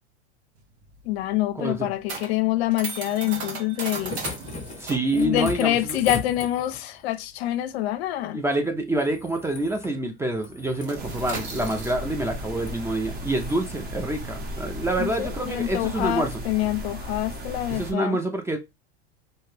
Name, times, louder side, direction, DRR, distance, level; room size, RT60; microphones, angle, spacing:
sound 1, 0.6-9.5 9.8-10.0 10.3-16.1, right 4 dB, 70° right, 1.2 m, -38 dB
voice 1, 1.0-4.2 5.1-8.4 15.0-18.2, left 14 dB, 70° left, 0.5 m, -26 dB
voice 2, 1.6-1.9 4.8-6.0 8.3-16.4 17.7-18.6, right 1 dB, 10° right, 0.4 m, -27 dB
sound 2, 3.7-7.0 8.9-10.0 10.3-10.9 11.5-11.9 12.5-12.8 13.3-13.6 15.0-15.1, left 5 dB, 20° left, 0.8 m, -38 dB
sound 3, 11.0-17.9, equal, 30° right, 1.0 m, -36 dB
2.7 x 2.3 x 3.2 m
hypercardioid pair, 100°, 33 cm